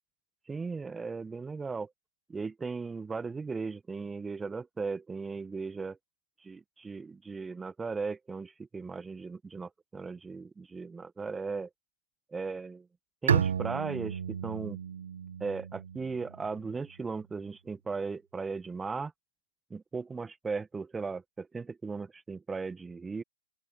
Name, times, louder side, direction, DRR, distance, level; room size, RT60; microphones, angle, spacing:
voice 1, 0.5-1.9 2.3-6.0 6.4-11.7 12.3-12.9 13.2-14.8 15.4-19.1 19.7-23.2, right 4 dB, 10° right, 1.4 m, -37 dB
Bowed string instrument, 13.3-16.8, right 8 dB, 65° right, 1.2 m, -32 dB
open air
figure-of-eight pair, 120°, 0 cm